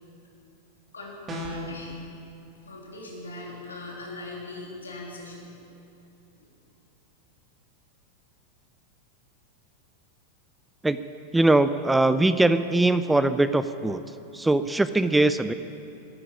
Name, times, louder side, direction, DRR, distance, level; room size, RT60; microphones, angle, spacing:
voice 1, 0.9-2.0 2.6-5.5 6.3-6.5, left 2 dB, 75° left, -2 dB, 3.3 m, -40 dB
sound 1, 1.3-1.8, equal, 20° right, 2.8 m, -33 dB
voice 2, 11.3-15.5, right 2 dB, 5° right, 12 dB, 0.4 m, -22 dB
12.0 x 10.0 x 10.0 m, 2.8 s
figure-of-eight pair, 90°, 0 cm